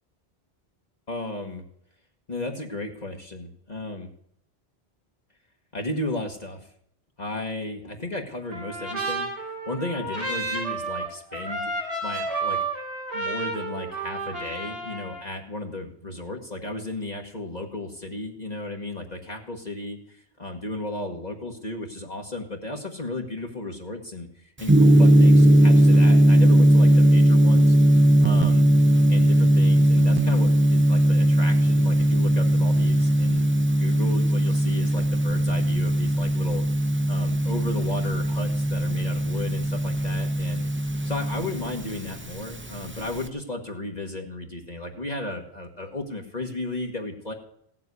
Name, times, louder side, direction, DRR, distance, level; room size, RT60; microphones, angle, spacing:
voice 1, 1.1-1.6 2.3-4.1 5.7-6.7 7.2-11.7 12.0-12.6 13.1-27.8 28.2-28.6 29.1-33.4 33.8-36.6 37.1-40.7 41.0-47.3, left 2 dB, 40° left, 1 dB, 1.6 m, -34 dB
Trumpet, 8.5-15.2, right 3 dB, 80° right, 3.6 m, -31 dB
Gong, 24.6-43.3, right 1 dB, 15° right, 0.7 m, -19 dB
16.0 x 7.6 x 9.5 m, 0.69 s
omnidirectional pair, 1.1 m